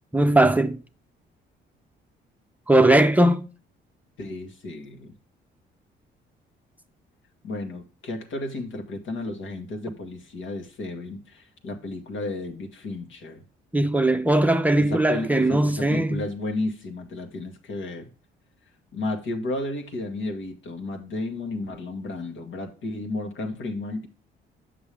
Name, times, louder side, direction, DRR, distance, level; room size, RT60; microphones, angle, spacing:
voice 1, 0.1-0.8 2.7-3.4 13.7-16.2, right 1 dB, 10° right, 0.6 m, -19 dB
voice 2, 4.2-5.1 7.4-13.4 14.8-18.1 18.9-24.1, left 2 dB, 75° left, 1.7 m, -33 dB
7.2 x 6.0 x 3.4 m
cardioid pair, 90°, 20 cm